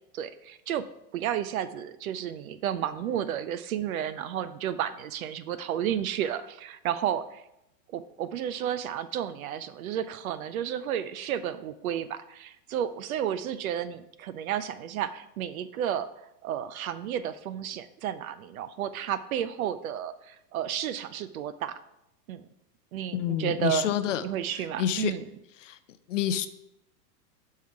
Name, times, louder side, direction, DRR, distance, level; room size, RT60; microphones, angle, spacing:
voice 1, 0.1-0.8 1.1-7.4 7.9-16.1 16.4-21.8 22.3-22.5 22.9-23.9 24.2-25.2, right 10 dB, 60° right, 13 dB, 0.6 m, -32 dB
voice 2, 23.1-24.2 24.5-25.1 25.6-25.8 26.1-26.5, left 10 dB, 50° left, 12 dB, 0.5 m, -28 dB
6.3 x 5.7 x 4.6 m, 0.84 s
supercardioid pair, 170°, 48 cm